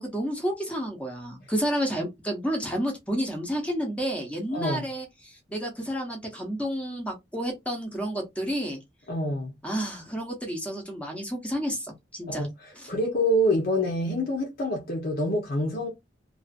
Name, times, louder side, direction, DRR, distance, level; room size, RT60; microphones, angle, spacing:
voice 1, 0.0-8.8 9.6-12.5 12.8-12.9, equal, 5° left, 0.7 m, -30 dB
voice 2, 4.5-4.9 9.1-9.5 12.3-15.9, equal, 55° left, 0.8 m, -26 dB
2.4 x 2.4 x 2.4 m
head